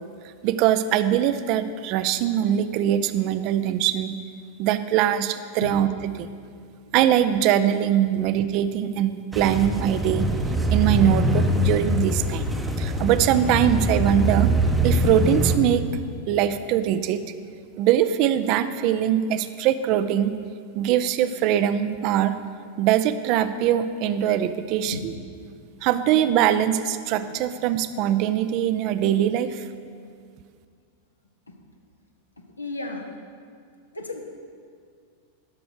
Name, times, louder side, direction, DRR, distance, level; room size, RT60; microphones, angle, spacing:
voice 1, 0.4-4.2 4.6-5.9 6.2-6.3 6.9-10.3 10.7-12.5 12.8-14.5 14.8-15.9 16.3-17.2 17.8-20.3 20.7-22.3 22.8-25.1 25.8-29.7, right 11 dB, 40° right, 12 dB, 0.4 m, -22 dB
sound 1, 9.3-15.6, right 1 dB, 5° right, 0.7 m, -23 dB
voice 2, 32.6-33.1 33.9-34.2, left 3 dB, 80° left, 2 dB, 0.8 m, -33 dB
11.5 x 6.1 x 4.9 m, 2.2 s
figure-of-eight pair, 90°, 0 cm